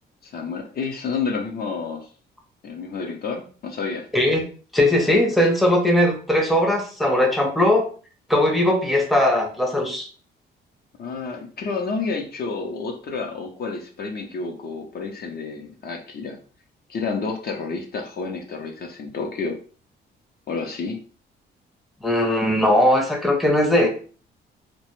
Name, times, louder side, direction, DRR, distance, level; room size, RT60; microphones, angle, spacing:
voice 1, 0.2-2.1 2.6-4.0 11.0-16.4 16.9-19.6 20.5-21.0, left 4 dB, 50° left, 2 dB, 0.6 m, -30 dB
voice 2, 4.1-4.5 4.7-7.9 8.3-10.1 22.0-23.9, left 1 dB, ahead, 1 dB, 0.6 m, -19 dB
2.1 x 2.0 x 3.0 m, 0.40 s
cardioid pair, 90°, 20 cm